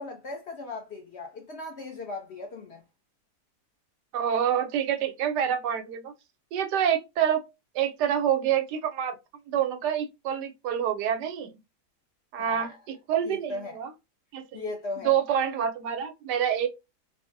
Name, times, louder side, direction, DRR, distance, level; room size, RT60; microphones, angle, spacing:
voice 1, 0.0-2.8 12.4-12.8 13.3-13.8 14.5-15.1, left 3 dB, 60° left, 0.7 m, -37 dB
voice 2, 4.1-6.1 6.5-7.4 7.7-9.1 9.5-11.5 12.3-13.9 14.3-14.6 15.0-16.7, right 9 dB, 90° right, 1.2 m, -27 dB
3.6 x 2.0 x 2.5 m
omnidirectional pair, 1.7 m